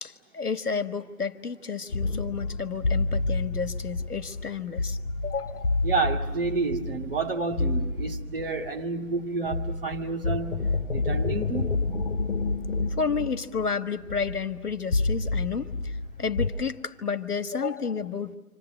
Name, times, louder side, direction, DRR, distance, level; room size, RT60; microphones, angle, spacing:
voice 1, 0.0-5.0 5.2-5.8 13.0-15.9 16.2-18.4, left 5 dB, 75° left, 10 dB, 1.7 m, -31 dB
sound 1, 1.9-9.2 9.4-16.5, left 3 dB, 55° left, 4.0 m, -29 dB
voice 2, 5.8-11.7, right 3 dB, 35° right, 1 dB, 2.3 m, -30 dB
29.0 x 26.5 x 7.2 m, 1.3 s
figure-of-eight pair, 165°, 46 cm